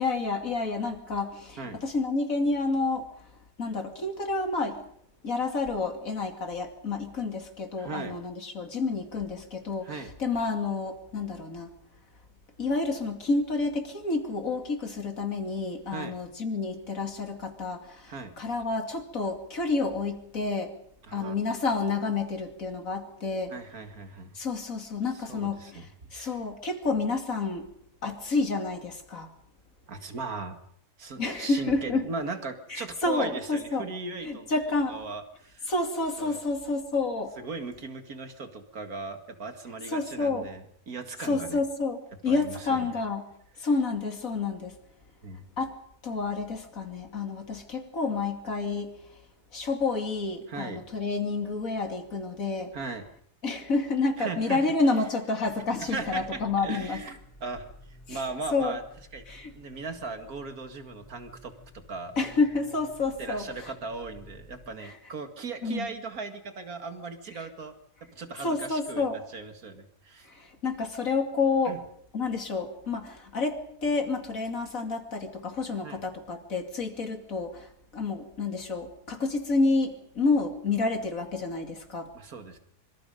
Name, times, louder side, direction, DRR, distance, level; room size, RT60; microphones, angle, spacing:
voice 1, 0.0-3.1 3.6-4.8 5.2-11.7 12.6-20.7 21.1-23.5 24.3-27.7 28.0-29.3 31.2-32.0 32.7-33.8 34.2-35.0 35.7-37.3 39.9-40.5 41.2-43.2 43.6-44.8 45.6-45.7 46.0-48.9 49.5-52.7 53.4-57.0 58.1-58.2 58.5-58.8 59.3-59.5 62.2-63.7 64.8-64.9 65.6-65.9 67.3-67.4 68.4-69.2 70.3-71.8 72.1-82.1, left 3 dB, 55° left, 4 dB, 3.0 m, -29 dB
voice 2, 7.8-8.2 9.8-10.1 15.9-16.2 18.1-18.3 21.1-21.3 23.5-24.4 25.1-26.4 29.9-30.6 31.0-34.5 34.9-35.7 36.2-36.4 37.4-40.6 40.9-41.6 42.3-42.9 43.6-43.7 45.2-45.4 50.5-50.8 52.7-53.0 54.2-54.6 55.8-57.7 58.1-58.8 59.1-59.2 59.5-62.1 63.2-67.7 68.1-70.3 71.7-71.8 75.8-76.0 82.1-82.6, right 3 dB, 65° right, 7 dB, 2.5 m, -38 dB
sound 1, 55.4-64.7, left 1 dB, 20° left, 4.0 m, -53 dB
25.5 x 24.5 x 5.2 m, 0.70 s
omnidirectional pair, 1.7 m